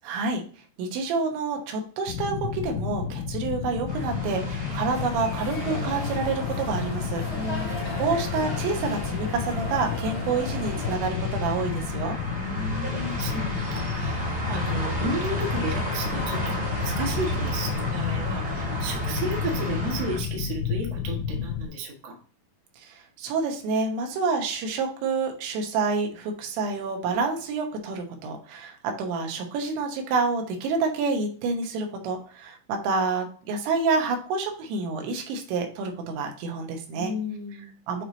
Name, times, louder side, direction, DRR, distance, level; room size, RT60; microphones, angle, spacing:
voice 1, 0.0-0.4 0.8-7.2 7.7-12.2 22.8-37.1 37.9-38.0, right 4 dB, 80° right, 3 dB, 3.4 m, -28 dB
sound 1, 2.1-21.7, left 7 dB, 85° left, 2.3 m, -31 dB
sound 2, 3.9-20.2, equal, 20° right, 1.2 m, -33 dB
sound 3, 4.9-11.0, left 1 dB, 10° left, 0.6 m, -37 dB
voice 2, 7.3-8.0 12.3-22.1 36.9-37.7, right 1 dB, 55° right, -1 dB, 1.8 m, -33 dB
8.6 x 3.1 x 3.9 m, 0.41 s
omnidirectional pair, 5.2 m